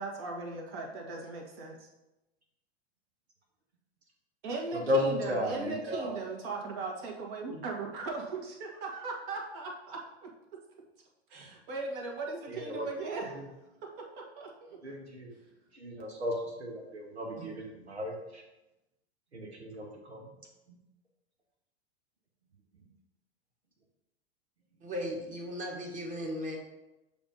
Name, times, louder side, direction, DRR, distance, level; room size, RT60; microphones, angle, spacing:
voice 1, 0.0-1.9 4.4-10.3 11.3-13.4 14.0-14.8, right 3 dB, 50° right, 0 dB, 1.6 m, -38 dB
voice 2, 4.9-5.6 5.9-6.1 12.5-12.8 14.8-15.3 15.8-16.3 16.6-18.2 19.3-20.2, left 1 dB, 90° right, -1 dB, 1.1 m, -34 dB
voice 3, 24.8-26.6, equal, 25° right, -1 dB, 1.5 m, -37 dB
6.8 x 2.7 x 5.0 m, 0.98 s
figure-of-eight pair, 90°, 32 cm